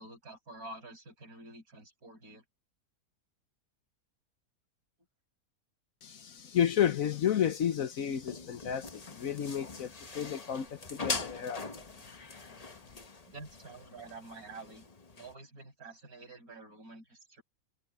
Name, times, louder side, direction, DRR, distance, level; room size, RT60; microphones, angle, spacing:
voice 1, 0.0-2.4 13.3-14.9 15.2-17.4, right 2 dB, 60° right, 6.4 m, -48 dB
voice 2, 6.0-11.7, left 9 dB, 65° left, 1.2 m, -31 dB
sound 1, 8.1-15.3, left 3 dB, 25° left, 1.2 m, -42 dB
omnidirectional pair, 1.7 m